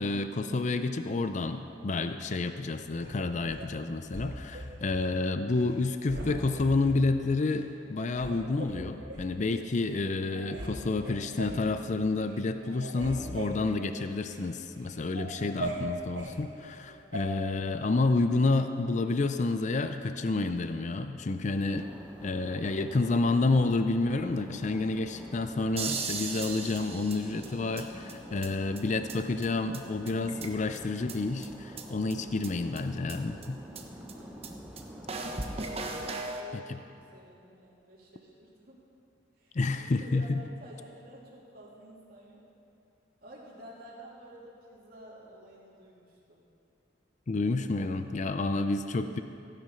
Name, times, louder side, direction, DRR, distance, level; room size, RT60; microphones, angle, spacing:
voice 1, 0.0-21.9 22.2-33.6 36.5-36.8 39.5-40.4 47.3-49.2, left 3 dB, 40° left, 9 dB, 0.5 m, -29 dB
sound 1, 3.0-3.7 4.1-5.1 5.5-5.7 6.1-7.0 7.6-7.7 8.1-9.3 9.9-10.0 10.3-10.7 11.0-11.7 12.1-12.4 12.6-14.4 14.8-16.3 17.1-17.3, right 1 dB, 70° right, 3.2 m, -39 dB
sound 2, 21.7-36.2, equal, 5° right, 0.9 m, -47 dB
sound 3, 25.8-27.8 28.1-28.2 28.4-28.5 28.8-28.9 29.1-29.2 29.4-29.5 29.7-29.8 30.1-30.8 31.1-31.2 31.4-31.5 31.8-31.9 32.1-32.2 32.4-32.5 32.8-32.9 33.1-33.2 33.4-33.5 33.7-33.8 34.1-34.2 34.4-34.5 34.8-34.9 35.1-36.4, right 4 dB, 35° right, 1.1 m, -36 dB
voice 2, 34.1-34.9 35.8-36.7 37.1-38.8 39.4-42.4 43.2-46.5 47.4-47.5 47.7-47.8, right 1 dB, 55° right, -6 dB, 3.2 m, -51 dB
16.0 x 9.1 x 5.7 m, 2.7 s
head